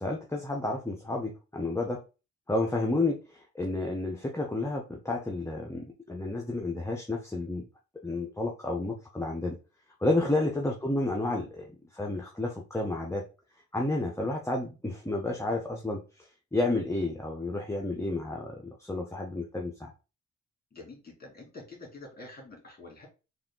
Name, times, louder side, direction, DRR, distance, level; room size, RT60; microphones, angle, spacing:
voice 1, 0.0-2.0 2.5-7.7 8.0-9.6 10.0-13.2 13.7-19.9, left 2 dB, 10° left, 1 dB, 0.8 m, -31 dB
voice 2, 20.7-23.1, left 2 dB, 30° left, 0 dB, 2.3 m, -47 dB
3.5 x 2.6 x 3.8 m, 0.31 s
supercardioid pair, 60°, 33 cm